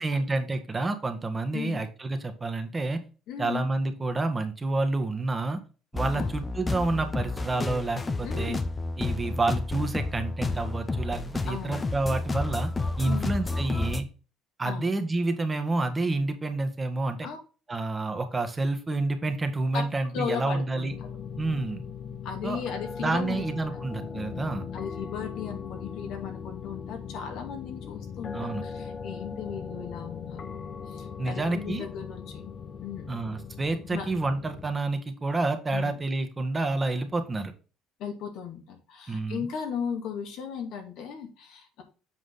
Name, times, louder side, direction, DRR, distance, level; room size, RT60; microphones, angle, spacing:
voice 1, 0.0-3.0 3.4-5.6 5.9-8.6 9.0-12.7 13.0-14.0 14.6-17.3 17.7-20.9 21.4-21.8 22.4-22.6 23.0-24.6 28.3-28.6 31.2-31.9 33.1-37.5 39.1-39.4, right 2 dB, 20° right, 7 dB, 1.5 m, -29 dB
voice 2, 3.3-3.6 6.1-6.3 8.2-8.7 11.5-11.9 13.0-13.3 14.6-14.9 17.2-17.4 19.7-19.9 20.1-21.1 22.2-23.4 23.7-23.8 24.7-32.5 32.8-33.1 33.9-34.1 35.7-35.9 38.0-41.8, left 7 dB, 70° left, 4 dB, 2.4 m, -36 dB
sound 1, 5.9-14.0, left 3 dB, 20° left, 0.9 m, -31 dB
sound 2, 20.9-34.7, left 6 dB, 45° left, 1.1 m, -39 dB
7.6 x 4.9 x 3.9 m, 0.34 s
cardioid pair, 105°, 0 cm